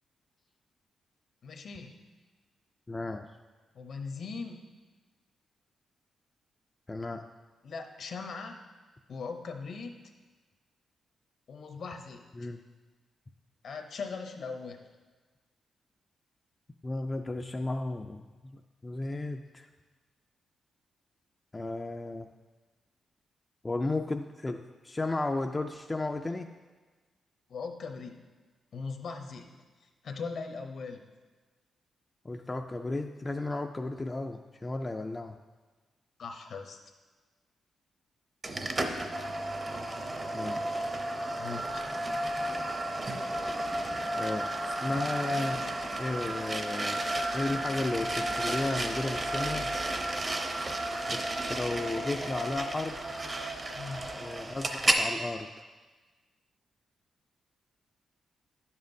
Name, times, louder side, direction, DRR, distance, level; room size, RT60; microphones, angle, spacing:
voice 1, 1.4-2.0 3.7-4.6 7.6-8.6 9.1-9.9 11.5-12.2 13.6-14.8 27.5-28.1 28.7-29.5 30.0-31.0 36.2-36.8 41.4-41.8 53.7-54.1, left 4 dB, 60° left, 5 dB, 0.8 m, -39 dB
voice 2, 2.9-3.3 6.9-7.2 12.4-12.6 16.8-19.7 21.5-22.3 23.6-26.5 32.2-35.4 40.3-40.8 44.1-45.6 46.0-49.7 51.1-53.0 54.2-55.5, left 2 dB, 20° left, 4 dB, 0.3 m, -34 dB
sound 1, 38.4-55.1, right 1 dB, 30° right, 0.6 m, -32 dB
10.5 x 7.2 x 2.6 m, 1.3 s
cardioid pair, 115°, 0 cm